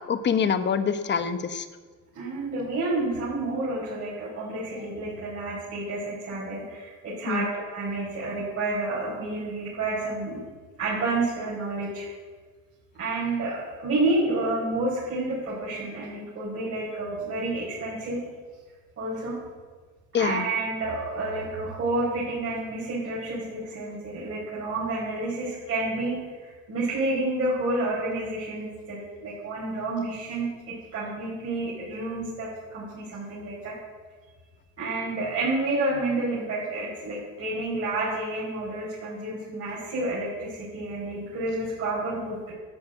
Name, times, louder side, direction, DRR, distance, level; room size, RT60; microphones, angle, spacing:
voice 1, 0.1-1.6 7.3-7.5 20.1-20.4, left 6 dB, 35° left, 10 dB, 1.0 m, -25 dB
voice 2, 2.1-10.4 10.8-12.1 13.0-18.2 19.0-19.4 20.2-30.5 30.9-33.7 34.8-42.5, right 2 dB, 45° right, -7 dB, 4.8 m, -29 dB
11.0 x 8.0 x 7.8 m, 1.5 s
cardioid pair, 110°, 33 cm